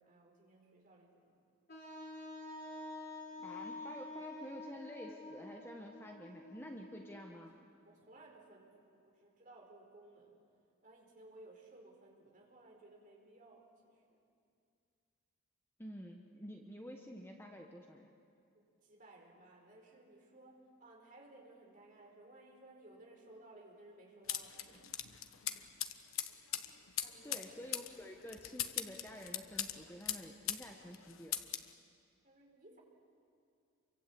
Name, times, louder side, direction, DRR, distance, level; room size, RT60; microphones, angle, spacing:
voice 1, 0.0-1.4 7.8-10.4 10.8-14.2 18.5-25.7 27.0-27.6 32.2-32.8, right 2 dB, 40° right, 0 dB, 4.7 m, -59 dB
Wind instrument woodwind instrument, 1.7-7.5, left 2 dB, 45° left, 3.7 m, -48 dB
voice 2, 3.4-7.5 15.8-18.1 27.2-31.4, equal, 10° left, 1 dB, 1.2 m, -49 dB
sound 1, 24.3-30.7 30.9-31.7, left 11 dB, 75° left, 1.2 m, -40 dB
28.5 x 24.0 x 8.4 m, 2.4 s
head